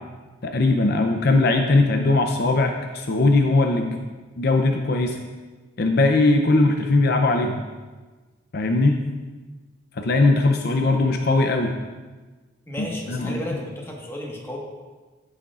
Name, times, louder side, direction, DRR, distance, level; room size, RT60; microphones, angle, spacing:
voice 1, 0.4-4.0 4.4-5.2 5.8-7.6 8.5-9.0 10.0-11.7 12.8-13.4, left 2 dB, 55° left, 4 dB, 0.6 m, -20 dB
voice 2, 12.7-14.6, left 1 dB, 15° left, -2 dB, 1.4 m, -33 dB
14.5 x 6.4 x 2.5 m, 1.3 s
head